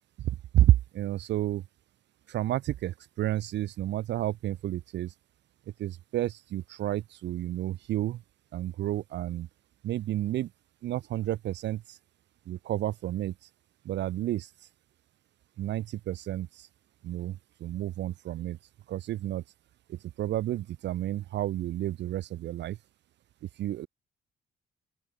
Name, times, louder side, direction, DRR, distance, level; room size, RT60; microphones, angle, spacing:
voice 1, 0.2-1.6 2.3-5.1 5.8-8.2 8.5-9.5 9.8-10.5 10.8-12.0 12.5-13.3 13.9-14.5 15.6-16.7 17.0-18.6 18.9-19.4 19.9-22.8 23.6-23.9, right 14 dB, 60° right, 0.4 m, -30 dB
open air
cardioid pair, 90°, 20 cm